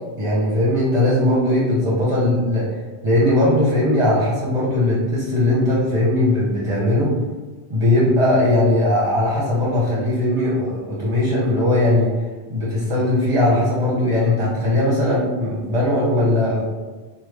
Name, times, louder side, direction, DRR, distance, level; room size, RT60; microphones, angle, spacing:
voice 1, 0.2-2.7 3.0-7.1 7.7-12.1 12.5-16.6, left 1 dB, 35° right, -6 dB, 0.6 m, -19 dB
3.1 x 2.1 x 3.2 m, 1.3 s
omnidirectional pair, 1.1 m